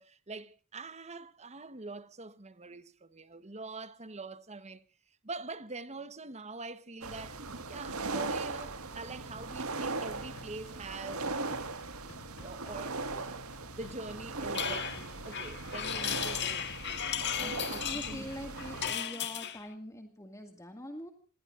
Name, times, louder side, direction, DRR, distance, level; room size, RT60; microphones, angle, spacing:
voice 1, 0.0-4.8 5.2-7.4 7.7-11.7 12.4-13.4 13.7-15.0 15.2-16.7 17.3-17.8 18.0-18.3, right 3 dB, 30° right, 1.1 m, -44 dB
sound 1, 7.0-18.9, right 3 dB, 85° right, 1.7 m, -39 dB
sound 2, 9.3-16.8, left 2 dB, 70° left, 5.0 m, -52 dB
sound 3, 14.5-19.6, left 9 dB, 55° left, 1.9 m, -36 dB
voice 2, 17.4-21.1, equal, 15° left, 1.9 m, -44 dB
27.5 x 20.0 x 2.5 m
head